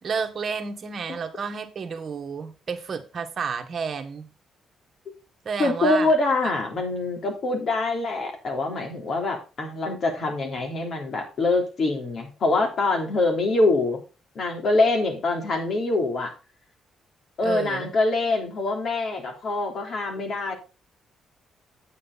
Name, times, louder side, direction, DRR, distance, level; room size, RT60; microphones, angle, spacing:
voice 1, 0.0-4.3 5.4-6.1 17.4-17.9, right 5 dB, 45° right, 5 dB, 1.6 m, -31 dB
voice 2, 5.6-14.0 14.3-16.3 17.4-20.5, left 2 dB, 55° left, 2 dB, 3.4 m, -24 dB
8.3 x 7.6 x 4.1 m, 0.31 s
cardioid pair, 90°, 0 cm